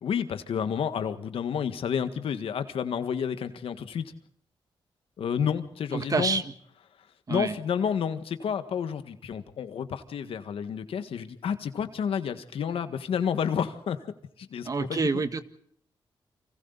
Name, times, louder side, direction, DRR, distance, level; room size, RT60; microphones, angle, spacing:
voice 1, 0.0-4.1 5.2-6.4 7.0-15.2, left 7 dB, 85° left, 9 dB, 1.7 m, -30 dB
voice 2, 5.9-6.5 7.3-7.5 14.6-15.4, right 4 dB, 40° right, 9 dB, 1.7 m, -27 dB
30.0 x 25.0 x 4.1 m, 0.66 s
cardioid pair, 95°, 9 cm